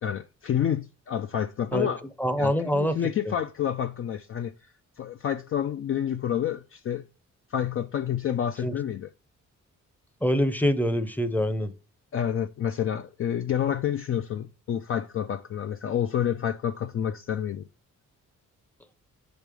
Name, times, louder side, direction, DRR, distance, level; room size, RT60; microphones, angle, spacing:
voice 1, 0.0-2.0 2.4-4.5 5.0-7.0 7.5-9.1 12.1-17.7, left 9 dB, 45° left, 0.4 m, -29 dB
voice 2, 2.2-3.0 8.6-8.7 10.2-11.7, equal, 5° left, 0.6 m, -25 dB
5.2 x 4.5 x 6.1 m
cardioid pair, 130°, 30 cm